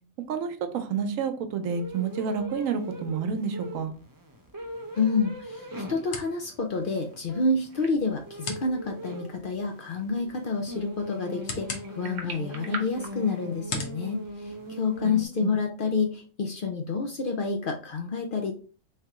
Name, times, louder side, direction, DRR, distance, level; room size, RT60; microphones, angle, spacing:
voice 1, 0.3-3.9 15.0-15.5, right 6 dB, 90° right, 1.1 m, -30 dB
sound 1, 1.7-15.3, equal, 30° right, 0.3 m, -41 dB
sound 2, 4.3-15.3, left 4 dB, 75° left, 1.2 m, -43 dB
voice 2, 4.9-18.5, left 4 dB, 60° left, 0.6 m, -29 dB
sound 3, 7.7-13.9, right 4 dB, 60° right, 1.0 m, -44 dB
3.2 x 2.9 x 3.6 m
omnidirectional pair, 1.4 m